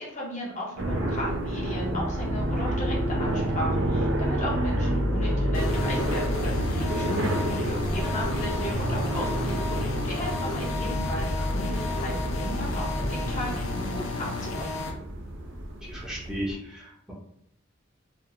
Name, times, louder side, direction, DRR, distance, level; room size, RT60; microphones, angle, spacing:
voice 1, 0.0-14.9, left 1 dB, 35° left, -4 dB, 0.7 m, -36 dB
sound 1, 0.8-16.5, right 1 dB, 65° right, 0.5 m, -29 dB
sound 2, 5.5-14.9, left 3 dB, 85° left, 0.5 m, -33 dB
voice 2, 7.1-7.4 15.8-17.1, right 1 dB, 5° right, -6 dB, 0.6 m, -35 dB
2.5 x 2.4 x 2.7 m, 0.73 s
head